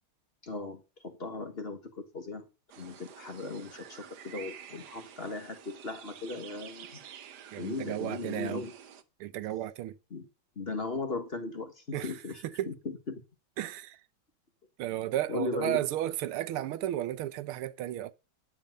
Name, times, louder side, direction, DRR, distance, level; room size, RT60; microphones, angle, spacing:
voice 1, 0.4-2.5 2.8-7.0 7.6-8.7 10.1-10.3 10.5-12.7 13.1-13.2 15.3-15.8, left 3 dB, 30° left, 1.4 m, -37 dB
sound 1, 2.7-9.0, right 9 dB, 60° right, 1.3 m, -50 dB
voice 2, 7.5-8.7 9.2-10.0 11.9-12.1 12.4-12.7 13.6-14.0 14.8-18.1, right 13 dB, 85° right, 1.6 m, -33 dB
10.5 x 7.0 x 6.4 m
omnidirectional pair, 2.3 m